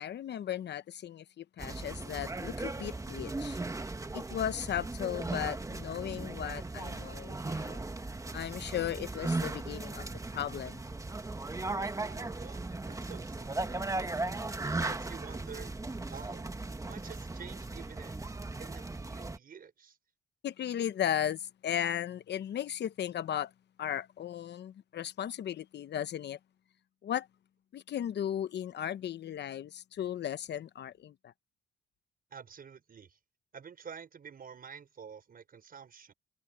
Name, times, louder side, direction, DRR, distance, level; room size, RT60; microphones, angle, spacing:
voice 1, 0.0-3.6 4.1-7.8 8.3-10.1 10.3-10.8 13.9-14.0 20.4-23.5 23.8-26.4 27.0-27.3 27.7-31.3, left 10 dB, 60° left, 0.9 m, -36 dB
sound 1, 1.6-19.4, right 2 dB, 15° right, 1.6 m, -37 dB
voice 2, 12.0-13.9 14.6-15.7 16.1-16.4 16.8-18.1 18.6-20.0 32.3-33.2 33.5-36.1, right 7 dB, 45° right, 5.8 m, -49 dB
cardioid pair, 90°, 20 cm